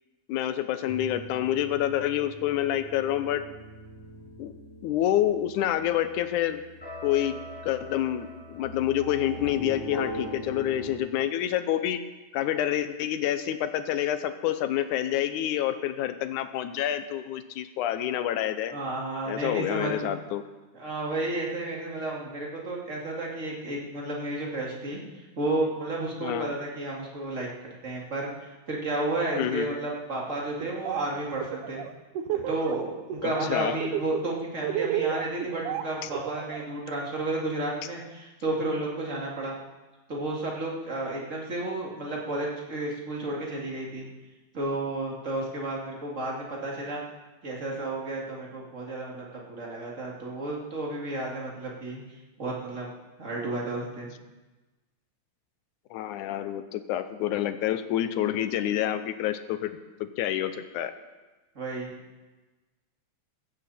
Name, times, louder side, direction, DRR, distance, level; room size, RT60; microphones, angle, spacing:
voice 1, 0.3-3.4 4.4-4.5 4.8-6.6 7.0-12.0 12.3-18.7 19.3-20.4 26.2-26.5 29.4-29.7 33.2-33.8 36.0-36.1 55.9-60.9, left 11 dB, 80° left, 11 dB, 2.2 m, -28 dB
sound 1, 0.9-11.0, right 1 dB, 5° left, 6.1 m, -42 dB
voice 2, 18.7-20.1 20.7-25.0 25.4-31.8 32.3-39.6 40.1-44.1 44.5-47.0 47.4-52.0 52.4-52.9 53.2-54.1 61.5-61.9, right 2 dB, 25° right, -2 dB, 2.5 m, -32 dB
Laughter, 30.6-31.0 31.3-32.8 33.1-33.5 33.8-36.6, right 10 dB, 80° right, 2.3 m, -31 dB
15.5 x 14.0 x 4.3 m, 1.2 s
omnidirectional pair, 3.6 m